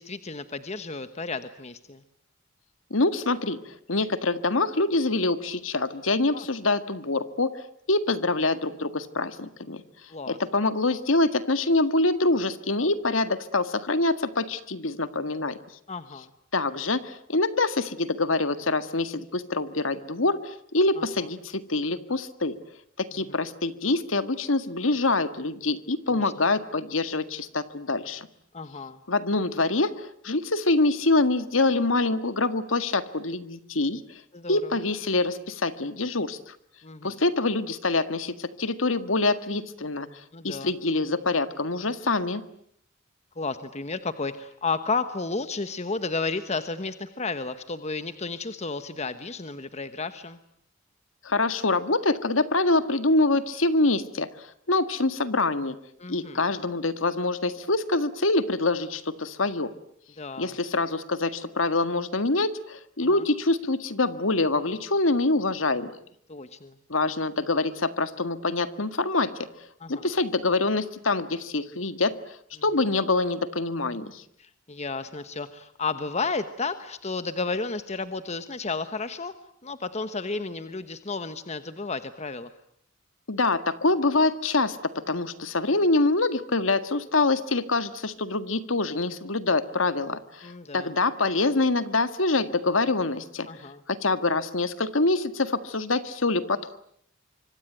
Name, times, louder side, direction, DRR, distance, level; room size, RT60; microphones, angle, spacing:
voice 1, 0.0-2.0 6.3-6.4 10.1-10.4 15.9-16.3 21.0-21.1 26.1-26.3 28.5-29.0 34.3-34.7 36.8-37.1 40.3-40.7 43.4-50.4 56.0-56.4 60.2-60.5 63.1-63.2 66.3-66.7 69.8-70.1 74.4-79.3 79.6-82.5 90.4-90.9 93.5-93.8, left 4 dB, 35° left, 11 dB, 1.2 m, -32 dB
voice 2, 2.9-7.5 7.9-9.8 10.3-15.6 16.5-22.6 23.0-28.3 29.1-34.0 34.5-36.5 37.0-40.1 40.4-42.4 51.2-55.8 56.1-59.7 60.4-65.9 66.9-69.3 69.9-74.2 83.3-93.5 93.9-96.8, left 2 dB, 85° left, 12 dB, 1.9 m, -25 dB
25.5 x 25.0 x 9.2 m, 0.69 s
head